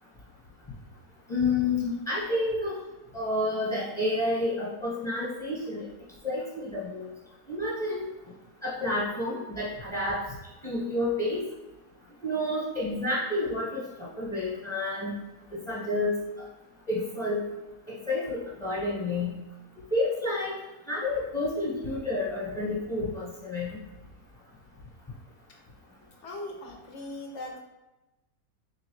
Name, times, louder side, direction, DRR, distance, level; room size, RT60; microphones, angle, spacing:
voice 1, 1.3-2.8 3.1-5.9 6.2-7.1 7.5-8.1 8.6-10.2 10.6-11.4 12.2-15.1 15.5-16.2 16.9-17.4 17.9-19.3 19.9-20.5 20.9-23.8, left 2 dB, 20° left, -8 dB, 1.0 m, -29 dB
voice 2, 26.2-27.6, left 1 dB, 60° left, 1 dB, 0.8 m, -39 dB
3.9 x 3.1 x 3.1 m, 1.0 s
omnidirectional pair, 1.7 m